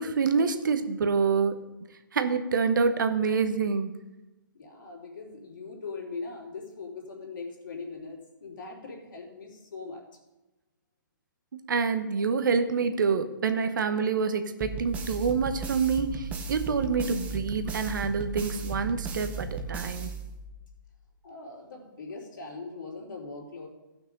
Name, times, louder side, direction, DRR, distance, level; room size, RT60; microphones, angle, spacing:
voice 1, 0.0-1.6 2.1-3.9 11.5-20.1, right 5 dB, 70° right, 9 dB, 1.1 m, -27 dB
voice 2, 4.5-10.0 21.2-23.7, left 4 dB, 70° left, -1 dB, 3.2 m, -41 dB
sound 1, 14.6-20.7, right 4 dB, 15° right, 0.8 m, -36 dB
15.0 x 6.0 x 5.3 m, 1.1 s
hypercardioid pair, 155°, 11 cm